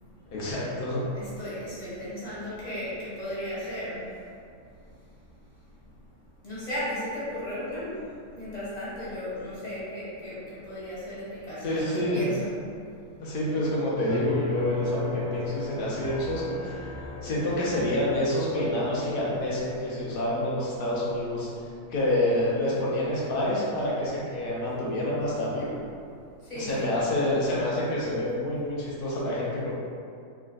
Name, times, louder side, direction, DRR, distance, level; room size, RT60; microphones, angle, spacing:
voice 1, 0.3-1.0 11.6-12.2 13.2-21.5 21.9-25.7 26.5-29.7, left 1 dB, 90° left, -7 dB, 0.4 m, -28 dB
voice 2, 1.1-4.2 6.4-12.5 12.9-13.0 26.4-26.9, left 1 dB, 30° left, -11 dB, 1.0 m, -35 dB
sound 1, 14.1-21.3 21.7-22.4, left 3 dB, 65° left, 0.7 m, -36 dB
3.3 x 2.3 x 2.2 m, 2.4 s
omnidirectional pair, 1.6 m